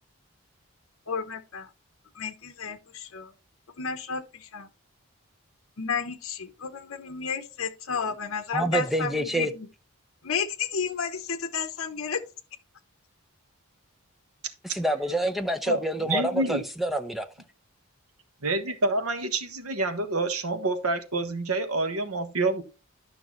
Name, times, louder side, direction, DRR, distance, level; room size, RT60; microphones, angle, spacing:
voice 1, 1.1-1.7 2.1-3.3 3.8-4.7 5.8-9.7 10.2-12.2, left 6 dB, 65° left, 0.9 m, -32 dB
voice 2, 8.5-9.5 14.6-17.3, right 1 dB, ahead, 0.7 m, -27 dB
voice 3, 16.1-16.6 18.4-22.6, right 2 dB, 80° right, 1.4 m, -27 dB
11.5 x 5.9 x 3.1 m
head